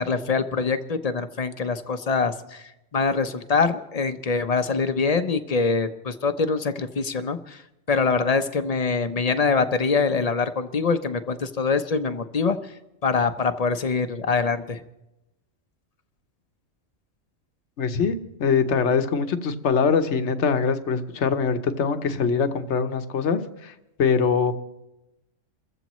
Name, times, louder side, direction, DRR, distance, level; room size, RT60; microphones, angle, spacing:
voice 1, 0.0-7.6 7.9-12.6 13.0-14.8, left 4 dB, 35° left, 9 dB, 0.7 m, -24 dB
voice 2, 17.8-24.5, left 5 dB, 65° left, 8 dB, 1.2 m, -23 dB
29.0 x 15.0 x 3.1 m, 0.95 s
omnidirectional pair, 1.3 m